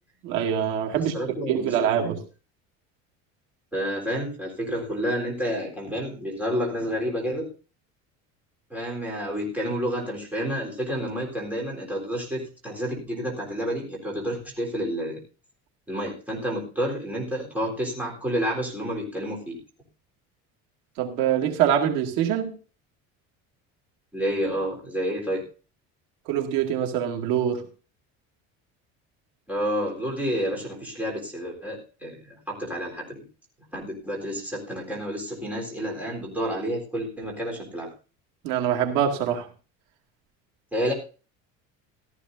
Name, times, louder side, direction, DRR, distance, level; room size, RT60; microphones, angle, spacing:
voice 1, 0.2-1.1 1.5-2.2 21.0-22.5 26.3-27.6 38.4-39.5, right 9 dB, 85° right, 2 dB, 2.3 m, -24 dB
voice 2, 0.9-2.1 3.7-7.5 8.7-15.2 15.9-19.6 24.1-25.5 29.5-33.2 33.7-37.9 40.7-40.9, equal, 5° right, -3 dB, 3.9 m, -30 dB
15.0 x 13.5 x 2.7 m, 0.35 s
cardioid pair, 170°, 31 cm